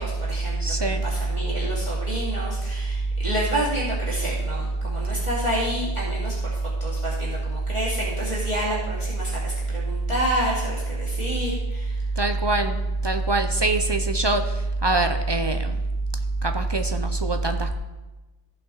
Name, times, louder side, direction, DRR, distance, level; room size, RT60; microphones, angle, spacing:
voice 1, 0.0-12.0, right 1 dB, 25° right, -7 dB, 2.5 m, -30 dB
voice 2, 0.6-1.0 12.2-15.8 16.4-17.7, right 2 dB, 45° right, 7 dB, 0.3 m, -23 dB
15.0 x 5.6 x 3.9 m, 1.1 s
omnidirectional pair, 1.2 m